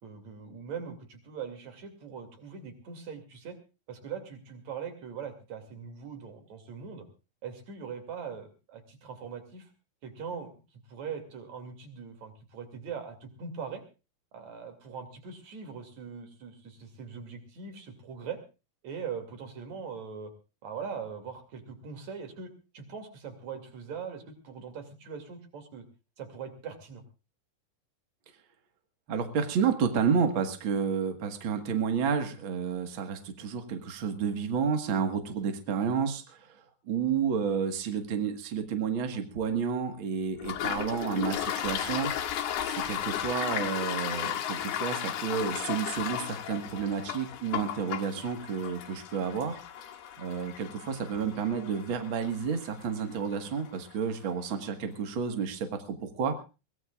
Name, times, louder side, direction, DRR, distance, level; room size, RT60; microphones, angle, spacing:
voice 1, 0.0-3.6 3.9-7.1 7.4-9.7 10.0-13.8 14.3-18.4 18.8-20.3 20.6-25.8 26.2-27.0, right 6 dB, 45° right, 6 dB, 3.3 m, -41 dB
voice 2, 29.1-36.5 36.9-42.1 42.7-49.6 50.2-56.3, right 6 dB, 90° right, 6 dB, 1.1 m, -30 dB
Toilet flush, 40.4-53.8, left 10 dB, 70° left, 3.3 m, -35 dB
23.0 x 18.0 x 2.4 m, 0.31 s
omnidirectional pair, 5.1 m